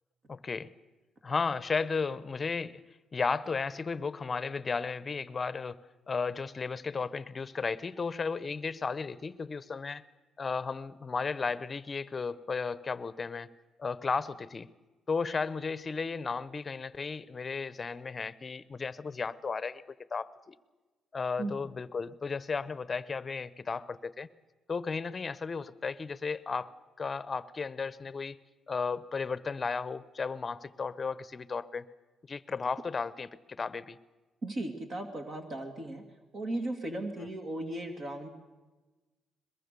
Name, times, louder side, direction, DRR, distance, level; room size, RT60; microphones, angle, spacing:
voice 1, 0.3-0.7 1.2-2.8 3.1-5.8 6.1-10.0 10.4-13.5 13.8-14.7 15.1-19.8 20.1-20.5 21.1-24.3 24.7-26.7 27.0-28.4 28.7-31.8 32.3-34.0, left 5 dB, 35° left, 17 dB, 0.8 m, -34 dB
voice 2, 34.4-36.0 36.3-38.3, right 1 dB, 45° right, 4 dB, 2.4 m, -36 dB
22.5 x 21.5 x 6.8 m, 1.2 s
cardioid pair, 90°, 0 cm